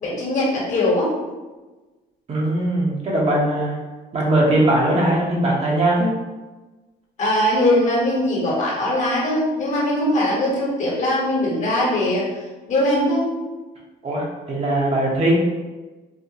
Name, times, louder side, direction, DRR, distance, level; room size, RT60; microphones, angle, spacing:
voice 1, 0.0-1.1 7.2-12.3 12.7-13.3, left 1 dB, 45° left, -5 dB, 1.2 m, -20 dB
voice 2, 2.3-3.8 4.1-6.1 14.0-15.4, right 1 dB, 40° right, -4 dB, 0.9 m, -20 dB
4.0 x 2.2 x 2.8 m, 1.2 s
cardioid pair, 110°, 17 cm